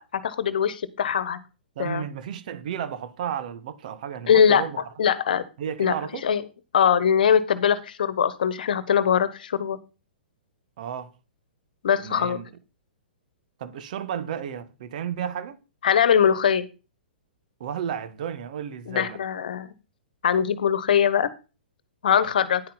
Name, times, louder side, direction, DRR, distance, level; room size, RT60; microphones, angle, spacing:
voice 1, 0.0-1.4 1.8-2.0 4.3-4.6 5.0-5.4 5.8-5.9 6.2-6.4 6.7-9.8 11.8-12.4 15.8-16.7 18.9-19.7 20.2-21.3 22.0-22.6, left 8 dB, 60° left, 1.3 m, -21 dB
voice 2, 1.7-4.9 5.6-6.3 10.8-11.1 12.0-12.5 13.6-15.6 17.6-19.2, right 8 dB, 50° right, 1.5 m, -33 dB
10.5 x 8.7 x 4.0 m
figure-of-eight pair, 115°, 5 cm